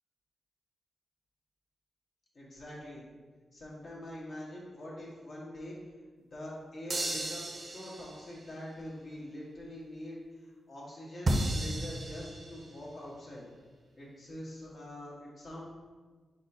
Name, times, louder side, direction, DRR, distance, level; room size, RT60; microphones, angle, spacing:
voice 1, 2.3-3.0 3.5-5.8 6.2-13.4 14.0-15.6, left 1 dB, 60° left, -5 dB, 1.3 m, -44 dB
sound 1, 6.9-8.4 11.3-12.8, right 1 dB, 40° right, 0.5 m, -33 dB
4.4 x 4.1 x 2.8 m, 1.4 s
cardioid pair, 95°, 0 cm